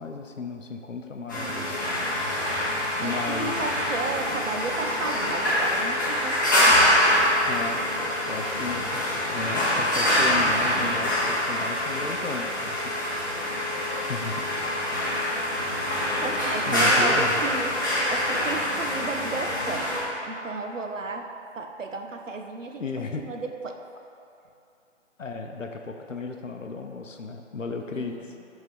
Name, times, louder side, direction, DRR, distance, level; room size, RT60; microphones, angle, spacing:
voice 1, 0.0-1.8 3.0-3.6 7.5-7.8 8.3-12.9 14.1-14.4 14.9-15.0 16.7-17.4 22.8-23.3 25.2-28.3, left 4 dB, 80° left, 4 dB, 0.7 m, -34 dB
sound 1, 1.3-20.0, left 1 dB, 15° left, 0.7 m, -25 dB
voice 2, 3.0-6.8 15.9-17.7 18.1-19.9 20.3-23.8 27.9-28.3, right 3 dB, 80° right, 4 dB, 0.7 m, -33 dB
8.0 x 3.6 x 3.4 m, 2.6 s
figure-of-eight pair, 150°, 38 cm